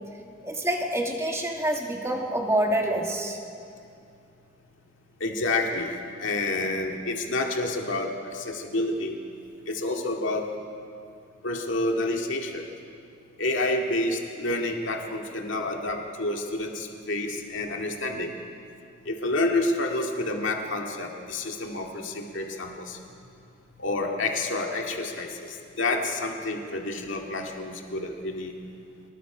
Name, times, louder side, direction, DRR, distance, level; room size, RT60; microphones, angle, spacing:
voice 1, 0.4-3.4, right 1 dB, 15° right, 1 dB, 2.1 m, -27 dB
voice 2, 5.2-9.2 9.7-10.5 11.4-12.6 13.4-18.3 19.1-23.0 23.8-28.5, left 2 dB, 70° left, 1 dB, 2.2 m, -29 dB
26.0 x 20.5 x 5.1 m, 2.5 s
head